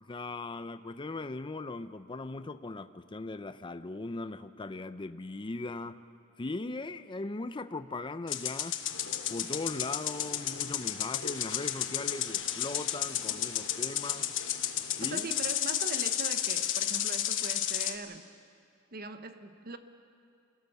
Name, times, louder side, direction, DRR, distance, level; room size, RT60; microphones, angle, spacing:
voice 1, 0.0-6.0 6.4-8.8 9.3-14.3 15.0-15.3, left 3 dB, 25° left, 0.5 m, -39 dB
sound 1, 8.3-18.0, left 11 dB, 60° left, 1.1 m, -32 dB
sound 2, 8.8-15.5, left 2 dB, 85° left, 2.3 m, -49 dB
voice 2, 15.0-18.3 18.9-19.8, right 4 dB, 45° right, 0.9 m, -41 dB
27.0 x 17.0 x 6.8 m
head